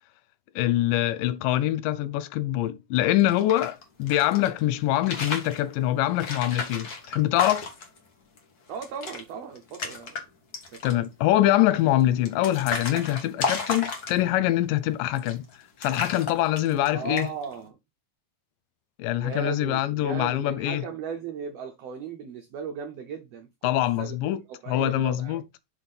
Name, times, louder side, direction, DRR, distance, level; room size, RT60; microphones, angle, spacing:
voice 1, 0.6-7.7 10.8-15.4 15.8-17.3 19.0-20.9 23.6-24.4 24.7-25.4, left 14 dB, 85° left, 2.3 m, -24 dB
sound 1, 3.2-4.5 4.9-5.6 6.2-8.0 8.4-8.5 8.7-9.2 9.5-10.2 10.5-11.1 11.7-14.4 15.1-15.5 15.8-16.9 17.2-17.5, left 4 dB, 55° left, 1.0 m, -33 dB
voice 2, 8.7-10.2 10.7-10.8 16.9-17.8 19.2-23.7 24.0-24.2 24.5-25.4, right 6 dB, 75° right, 1.5 m, -37 dB
6.1 x 3.5 x 5.6 m
omnidirectional pair, 3.8 m